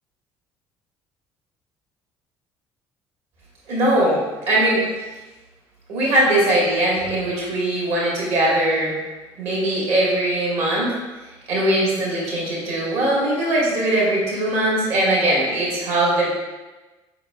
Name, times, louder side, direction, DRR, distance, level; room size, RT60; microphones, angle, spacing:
voice 1, 3.7-4.9 5.9-8.9 9.4-11.0 11.5-16.3, right 1 dB, 65° right, -5 dB, 1.5 m, -20 dB
4.8 x 3.8 x 2.2 m, 1.2 s
hypercardioid pair, 55°, 12 cm